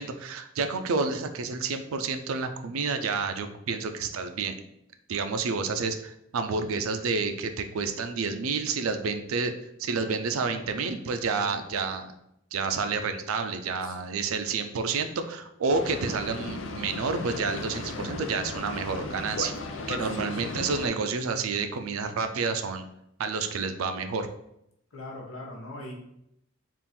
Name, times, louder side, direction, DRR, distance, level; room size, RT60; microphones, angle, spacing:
voice 1, 0.0-4.5 5.1-9.5 9.8-12.1 12.5-19.5 19.9-22.8 23.2-24.3, right 4 dB, 85° right, 8 dB, 0.4 m, -29 dB
voice 2, 10.5-11.5 13.8-14.0 20.0-20.7 24.9-25.9, left 1 dB, 85° left, -1 dB, 1.0 m, -42 dB
Boat Water vehicle, 15.7-20.9, left 3 dB, 65° left, 0.5 m, -36 dB
3.6 x 2.5 x 4.2 m, 0.78 s
head